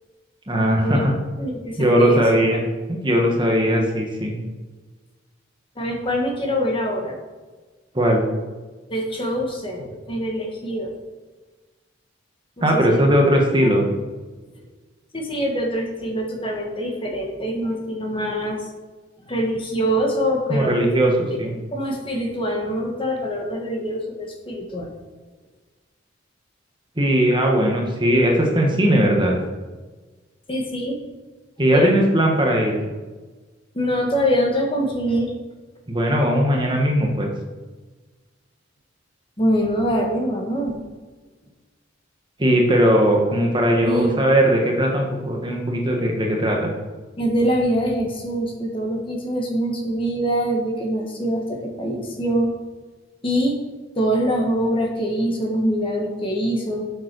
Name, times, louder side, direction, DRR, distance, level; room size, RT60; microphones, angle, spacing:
voice 1, 0.5-1.1 1.8-2.6 3.0-4.4 7.9-8.2 12.6-13.9 20.5-21.1 21.4-21.5 27.0-29.4 31.6-32.8 35.9-37.3 42.4-46.7, equal, 25° right, 0 dB, 1.5 m, -18 dB
voice 2, 1.4-2.2 5.7-7.2 8.9-10.9 12.6-13.0 13.6-13.7 14.5-14.6 15.1-18.6 19.3-21.1 21.7-24.9 30.5-31.0 31.7-32.0 33.7-35.3 39.4-40.8 43.7-44.3 47.2-52.5 53.2-53.6 53.9-56.9, equal, 25° left, 1 dB, 1.6 m, -24 dB
7.6 x 7.3 x 6.1 m, 1.3 s
head